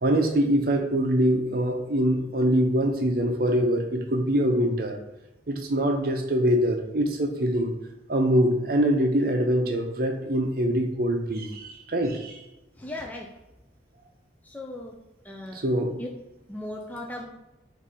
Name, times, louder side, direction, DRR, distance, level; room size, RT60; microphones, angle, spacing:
voice 1, 0.0-5.0 5.5-7.7 8.1-12.4 15.5-15.9, equal, 50° right, 3 dB, 0.6 m, -24 dB
voice 2, 12.8-13.3 14.5-14.9 15.3-15.6 16.0-16.1 16.5-17.3, left 1 dB, 10° left, 0 dB, 0.3 m, -37 dB
4.8 x 2.6 x 4.1 m, 0.97 s
head